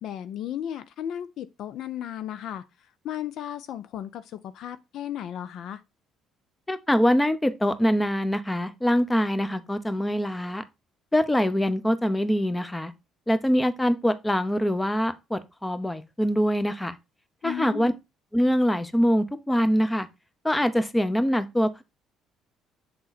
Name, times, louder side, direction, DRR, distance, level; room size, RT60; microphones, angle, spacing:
voice 1, 0.0-2.6 3.0-5.8 17.4-17.9, left 10 dB, 65° left, 0.4 m, -35 dB
voice 2, 6.7-10.6 11.1-12.9 13.3-17.0 17.4-17.9 18.3-20.1 20.4-21.8, equal, 10° left, 0.7 m, -24 dB
7.0 x 3.7 x 4.0 m
supercardioid pair, 75°, 0 cm